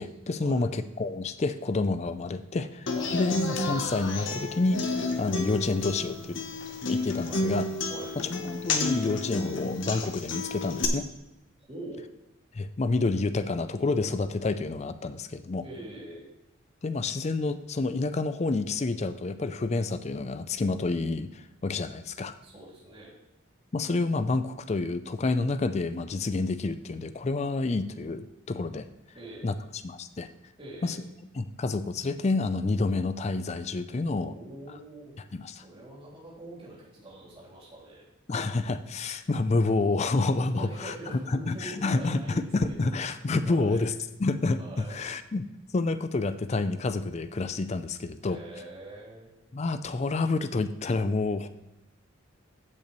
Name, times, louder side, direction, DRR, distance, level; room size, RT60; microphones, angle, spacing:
voice 1, 0.0-4.9 5.2-6.4 6.9-7.6 8.3-11.1 12.5-15.6 16.8-22.3 23.7-28.9 29.4-29.5 29.8-30.3 30.8-31.0 31.4-34.3 35.3-35.6 38.3-43.9 44.2-45.5 45.7-48.4 49.5-51.5, left 3 dB, 30° left, 12 dB, 0.4 m, -29 dB
Human voice / Acoustic guitar, 2.9-10.8, left 3 dB, 60° left, 0.9 m, -31 dB
voice 2, 11.7-12.0 15.6-16.2 22.4-23.1 29.1-29.5 30.6-31.0 34.0-35.1 35.6-38.0 40.5-42.9 43.3-43.9 44.6-45.0 48.2-49.3, right 1 dB, 25° right, -6 dB, 3.2 m, -44 dB
15.0 x 5.4 x 3.1 m, 0.94 s
head